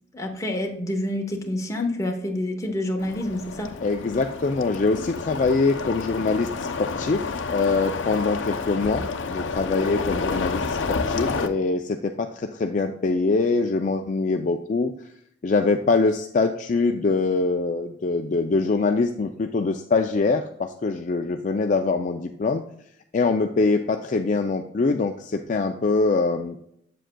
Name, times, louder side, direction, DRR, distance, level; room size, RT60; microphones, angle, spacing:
voice 1, 0.1-3.7, left 1 dB, 15° left, 2 dB, 1.0 m, -28 dB
sound 1, 3.0-11.5, left 4 dB, 80° left, 0.6 m, -30 dB
voice 2, 3.8-14.9 15.4-22.6 23.1-26.6, left 3 dB, 40° left, 5 dB, 0.4 m, -24 dB
7.6 x 7.5 x 2.2 m, 0.73 s
head